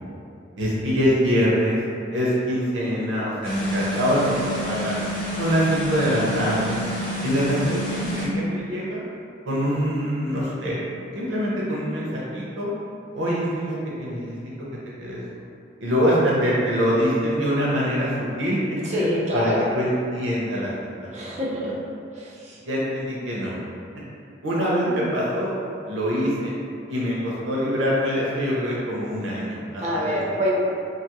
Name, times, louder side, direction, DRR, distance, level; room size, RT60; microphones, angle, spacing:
voice 1, 0.6-1.8 2.1-4.3 4.6-4.9 5.4-6.8 7.2-9.0 9.5-10.8 11.1-12.7 13.1-14.3 15.0-15.2 15.8-18.1 18.4-18.6 18.9-20.7 21.0-21.4 22.6-23.6 24.4-25.5 25.9-26.5 26.9-30.2, equal, 85° right, -6 dB, 0.6 m, -24 dB
sound 1, 3.4-8.3, equal, 50° left, 0.6 m, -29 dB
voice 2, 18.8-19.7 21.1-21.7 22.1-22.6 29.8-30.5, equal, 35° right, -5 dB, 0.5 m, -26 dB
2.7 x 2.4 x 2.9 m, 2.5 s
head